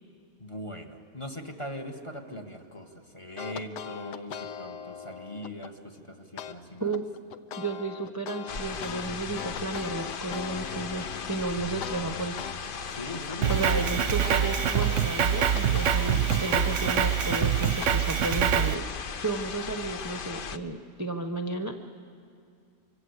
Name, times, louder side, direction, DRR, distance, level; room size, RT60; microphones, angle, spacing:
voice 1, 0.4-6.9 12.9-13.9, left 1 dB, 20° left, 5 dB, 1.4 m, -40 dB
sound 1, 3.4-5.7 6.4-6.5 6.9-12.6 12.9-17.9, left 8 dB, 85° left, 1.5 m, -40 dB
voice 2, 7.6-12.4 13.5-21.7, right 2 dB, 15° right, 6 dB, 0.8 m, -33 dB
sound 2, 8.5-20.6, left 6 dB, 50° left, 0.6 m, -37 dB
Drum kit, 13.4-18.7, right 9 dB, 55° right, 1.0 m, -25 dB
25.0 x 24.5 x 8.1 m, 2.3 s
omnidirectional pair, 1.7 m